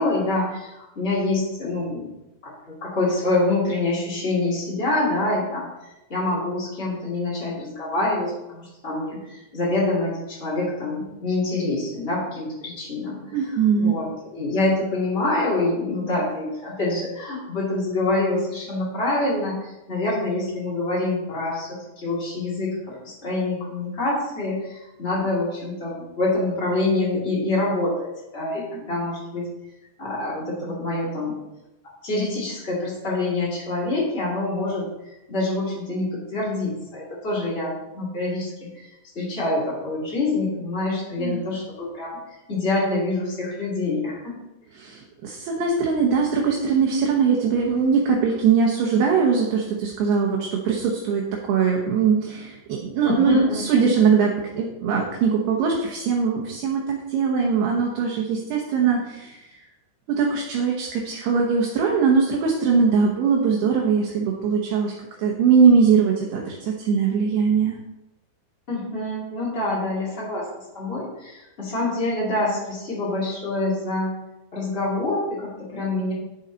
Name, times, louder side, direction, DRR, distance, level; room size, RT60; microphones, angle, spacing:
voice 1, 0.0-2.1 2.4-13.2 13.7-29.5 30.0-31.4 32.0-34.8 35.3-38.9 39.1-44.4 53.0-53.8 68.7-74.1 74.5-76.1, left 2 dB, 30° left, -7 dB, 1.1 m, -26 dB
voice 2, 13.3-14.0 41.2-41.4 44.8-59.5 60.1-67.8, right 6 dB, 70° right, -1 dB, 2.7 m, -21 dB
10.5 x 7.2 x 4.0 m, 0.98 s
omnidirectional pair, 5.5 m